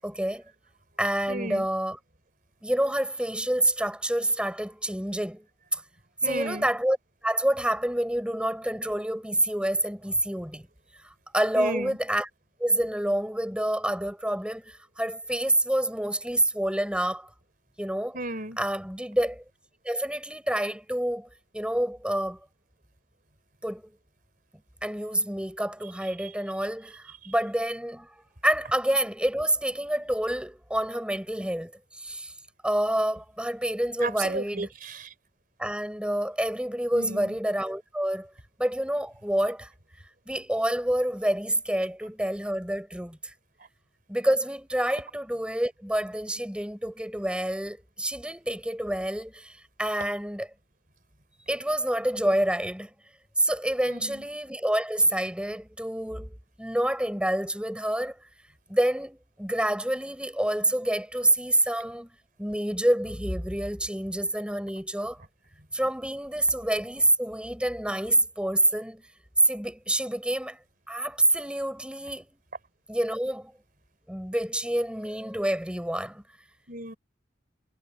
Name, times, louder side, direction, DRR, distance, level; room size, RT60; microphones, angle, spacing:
voice 1, 0.0-0.4 1.0-2.0 2.6-5.5 5.7-5.8 6.2-7.0 7.2-10.7 11.3-12.3 12.6-17.3 17.8-18.2 18.6-19.4 19.8-21.3 21.5-22.4 23.6-23.9 24.8-32.3 32.6-34.7 35.6-38.3 38.6-39.7 40.3-43.3 44.1-50.5 51.5-52.9 53.4-58.2 58.7-62.1 62.4-65.2 65.7-69.0 69.4-70.6 70.9-72.4 72.9-73.5 74.1-76.2, right 1 dB, 5° right, 7.1 m, -27 dB
voice 2, 1.3-1.7 6.2-6.7 11.6-12.0 18.1-18.6 34.0-35.1 36.9-37.3 53.8-54.2 76.7-77.0, right 2 dB, 45° right, 4.1 m, -34 dB
head